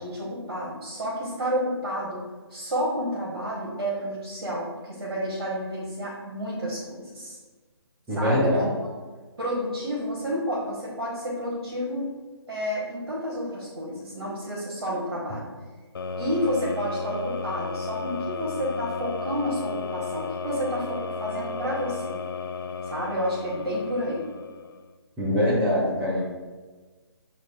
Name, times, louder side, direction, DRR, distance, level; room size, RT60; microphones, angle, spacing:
voice 1, 0.0-2.2 2.5-7.4 8.1-8.7 9.4-12.1 12.5-15.5 16.2-22.2 22.9-24.3, equal, 60° right, -6 dB, 1.3 m, -30 dB
voice 2, 8.1-8.7 25.2-26.2, equal, 10° right, -6 dB, 0.7 m, -23 dB
sound 1, 15.9-24.9, left 4 dB, 55° left, 0.4 m, -33 dB
7.6 x 2.6 x 2.4 m, 1.3 s
figure-of-eight pair, 140°, 14 cm